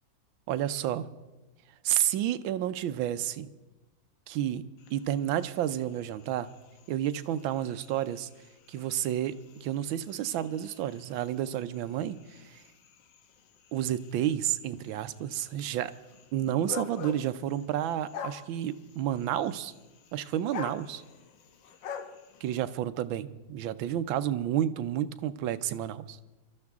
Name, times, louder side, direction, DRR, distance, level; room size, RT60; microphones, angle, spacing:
voice 1, 0.5-1.1 1.8-3.5 4.3-4.6 4.9-6.5 6.9-8.3 8.7-12.6 13.7-15.9 16.3-19.7 20.1-21.0 22.4-26.2, right 11 dB, 80° right, 12 dB, 1.4 m, -30 dB
sound 1, 4.8-22.7, left 7 dB, 70° left, 1.6 m, -47 dB
22.5 x 13.0 x 3.6 m, 1.1 s
omnidirectional pair, 2.2 m